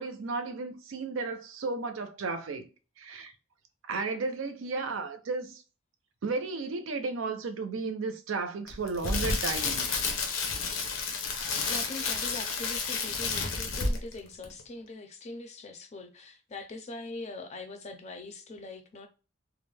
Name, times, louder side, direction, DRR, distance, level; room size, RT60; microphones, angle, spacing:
voice 1, 0.0-2.7 3.0-3.3 3.9-5.6 6.2-9.9, right 4 dB, 85° right, 0.5 m, -34 dB
Crackle, 8.7-14.2 14.4-14.6, left 4 dB, 85° left, 0.6 m, -31 dB
voice 2, 11.7-19.1, left 2 dB, 35° left, 0.4 m, -42 dB
2.4 x 2.1 x 3.2 m
head